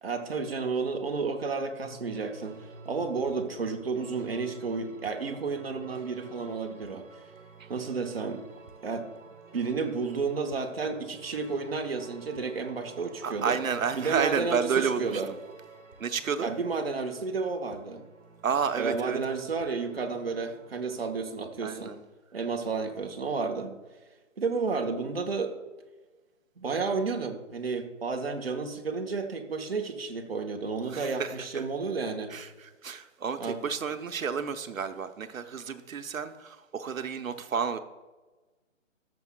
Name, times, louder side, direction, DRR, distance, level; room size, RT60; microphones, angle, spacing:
voice 1, 0.0-2.6 2.8-7.1 7.7-8.4 8.8-9.1 9.5-13.6 13.9-15.3 16.4-18.0 18.8-21.9 22.3-23.8 24.4-25.5 26.6-32.3 33.4-33.6, right 4 dB, 45° right, 1.0 m, -31 dB
sound 1, 1.8-21.1, right 5 dB, 65° right, 1.3 m, -51 dB
voice 2, 13.2-15.4 16.0-16.5 18.4-19.2 21.6-22.0 30.9-31.6 32.3-37.8, right 6 dB, 85° right, 0.9 m, -31 dB
15.5 x 7.1 x 2.3 m
hypercardioid pair, 175°, 40 cm